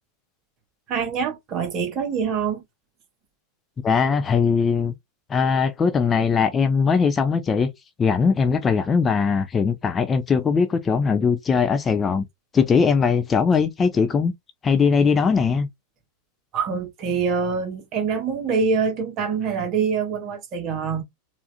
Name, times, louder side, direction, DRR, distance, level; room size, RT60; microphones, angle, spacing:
voice 1, 0.9-2.6 16.5-21.0, right 5 dB, 35° right, 1.3 m, -25 dB
voice 2, 3.8-4.9 5.3-7.7 8.0-12.3 12.5-14.3 14.6-15.7, left 5 dB, 20° left, 0.5 m, -20 dB
4.7 x 2.6 x 2.2 m
figure-of-eight pair, 90°, 0 cm